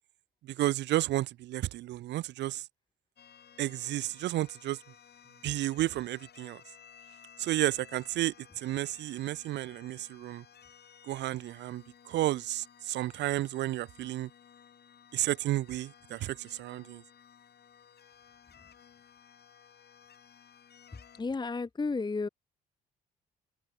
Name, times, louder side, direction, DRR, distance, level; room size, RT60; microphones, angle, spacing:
voice 1, 0.4-2.7 3.6-4.8 5.4-6.6 7.4-10.4 11.0-14.3 15.1-17.0, right 15 dB, 65° right, 0.5 m, -32 dB
sound 1, 3.2-21.2, left 8 dB, 55° left, 6.7 m, -57 dB
voice 2, 21.2-22.3, left 4 dB, 20° left, 0.8 m, -32 dB
hypercardioid pair, 50°, 19 cm